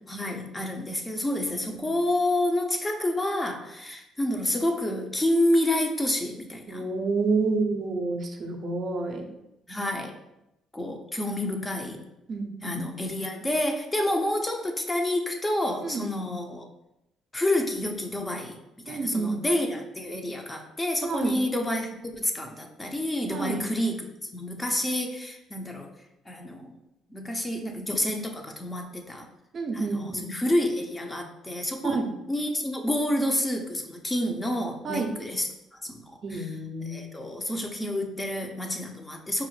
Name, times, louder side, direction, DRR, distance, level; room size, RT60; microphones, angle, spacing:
voice 1, 0.1-6.8 9.7-10.1 10.7-12.0 12.6-16.7 17.3-18.6 18.9-25.9 26.3-26.7 27.1-29.3 29.7-32.0 32.3-35.5 35.8-36.5 36.8-39.5, left 1 dB, 20° left, 3 dB, 0.5 m, -29 dB
voice 2, 6.7-9.3 12.3-12.9 15.8-16.1 18.9-19.4 21.0-21.4 23.3-23.6 29.5-30.4 31.8-32.1 34.8-35.1 36.2-37.1, right 3 dB, 50° right, 3 dB, 0.5 m, -29 dB
4.7 x 2.0 x 3.1 m, 0.89 s
cardioid pair, 85°, 0 cm